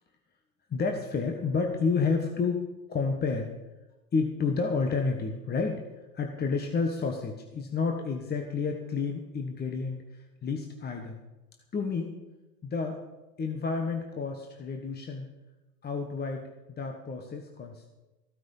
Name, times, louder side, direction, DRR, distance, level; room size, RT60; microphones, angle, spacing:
voice 1, 0.7-3.5 4.1-5.8 6.1-11.2 11.7-12.1 12.6-13.0 13.4-15.3 15.8-17.9, left 4 dB, 20° left, 4 dB, 1.4 m, -30 dB
15.0 x 9.2 x 5.5 m, 1.1 s
hypercardioid pair, 100°, 46 cm